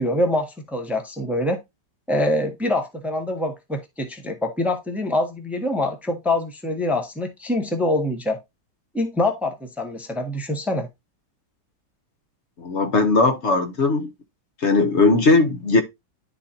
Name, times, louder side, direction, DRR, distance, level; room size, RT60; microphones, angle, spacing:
voice 1, 0.0-1.6 2.1-8.4 8.9-10.9, left 1 dB, ahead, 0.7 m, -25 dB
voice 2, 12.6-14.1 14.6-15.8, left 3 dB, 50° left, 1.0 m, -18 dB
10.5 x 3.9 x 2.7 m
omnidirectional pair, 1.9 m